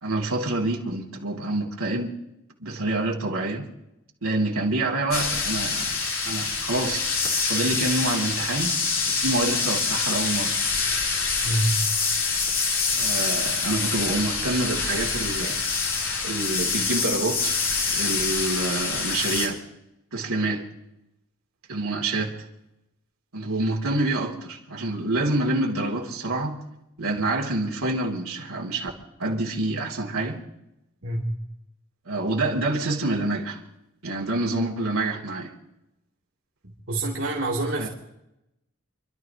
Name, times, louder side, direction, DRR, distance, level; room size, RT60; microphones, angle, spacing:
voice 1, 0.0-2.1 2.6-3.7 4.2-7.0 7.5-8.8 9.1-10.5 12.9-15.6 16.2-17.6 17.9-19.6 20.1-20.6 21.7-22.3 23.3-26.6 27.0-28.9 29.2-30.4 32.0-33.6 34.0-35.5 37.8-37.9, right 2 dB, 85° right, -1 dB, 2.9 m, -27 dB
sound 1, 5.1-19.5, left 4 dB, 75° left, 3.5 m, -26 dB
voice 2, 11.4-11.8 31.0-31.3 36.6-37.9, right 1 dB, 65° right, -4 dB, 3.0 m, -26 dB
29.5 x 12.5 x 3.0 m, 0.87 s
head